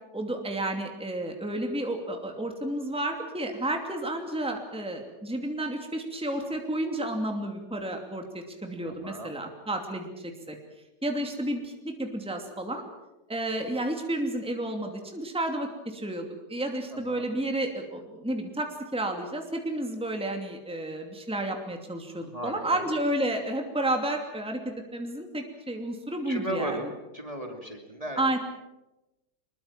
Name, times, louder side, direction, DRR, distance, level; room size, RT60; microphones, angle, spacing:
voice 1, 0.1-10.6 11.0-12.8 13.3-26.8 28.2-28.4, right 1 dB, 5° right, 3 dB, 2.7 m, -31 dB
voice 2, 8.8-9.4 16.9-17.3 22.3-22.9 26.2-28.2, right 1 dB, 20° right, 3 dB, 2.8 m, -36 dB
24.5 x 22.0 x 7.4 m, 0.99 s
omnidirectional pair, 1.8 m